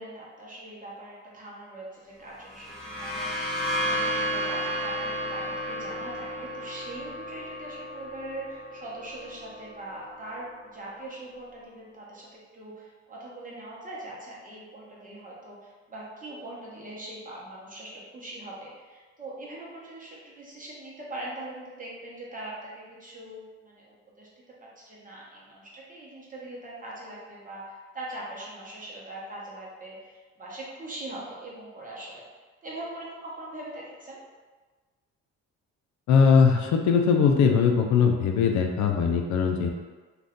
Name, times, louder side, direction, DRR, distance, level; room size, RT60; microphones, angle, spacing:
voice 1, 0.0-3.5 3.8-32.2 32.6-34.2, right 1 dB, 25° right, -5 dB, 1.0 m, -41 dB
sound 1, 2.4-10.0, equal, ahead, 0.7 m, -32 dB
voice 2, 36.1-39.7, left 6 dB, 70° left, 3 dB, 0.5 m, -20 dB
2.6 x 2.4 x 3.5 m, 1.3 s
cardioid pair, 90°, 30 cm